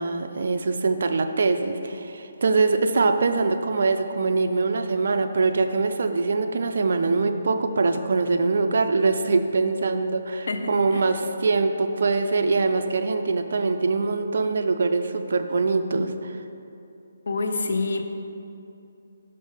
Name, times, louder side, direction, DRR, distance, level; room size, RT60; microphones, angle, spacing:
voice 1, 0.0-16.3, right 3 dB, 60° right, 7 dB, 0.5 m, -23 dB
voice 2, 10.5-11.1 17.3-18.0, left 3 dB, 65° left, 6 dB, 0.7 m, -27 dB
6.2 x 5.3 x 5.6 m, 2.7 s
hypercardioid pair, 165°, 0 cm